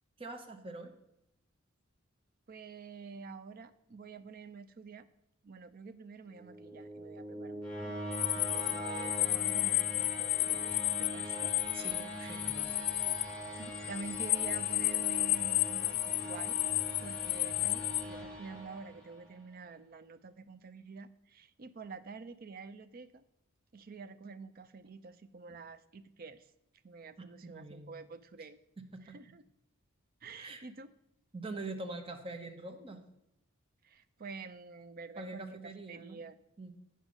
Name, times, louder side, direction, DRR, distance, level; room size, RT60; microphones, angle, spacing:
voice 1, 0.2-0.9 11.8-12.9 27.4-27.9 28.9-29.2 30.4-30.6 31.3-33.0 35.2-36.2 36.6-36.7, right 2 dB, 25° right, 4 dB, 0.8 m, -44 dB
voice 2, 2.5-5.1 5.4-8.0 8.3-11.6 12.2-12.5 13.5-16.6 17.0-23.2 23.7-26.5 26.8-28.6 29.0-29.4 30.2-30.9 33.8-36.4, right 4 dB, 45° right, 13 dB, 0.5 m, -48 dB
sound 1, 6.3-19.3, equal, 5° left, 2.0 m, -42 dB
sound 2, 8.1-18.0, left 19 dB, 60° left, 0.3 m, -32 dB
8.8 x 5.6 x 6.2 m, 0.83 s
head